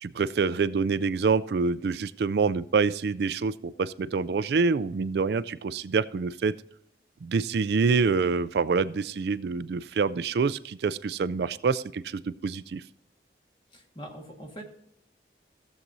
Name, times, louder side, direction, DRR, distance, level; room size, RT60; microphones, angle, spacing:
voice 1, 0.0-6.5 7.2-12.8, right 5 dB, 65° right, 16 dB, 0.4 m, -26 dB
voice 2, 13.7-14.6, equal, 30° left, 2 dB, 1.7 m, -42 dB
16.0 x 7.3 x 2.7 m, 0.75 s
head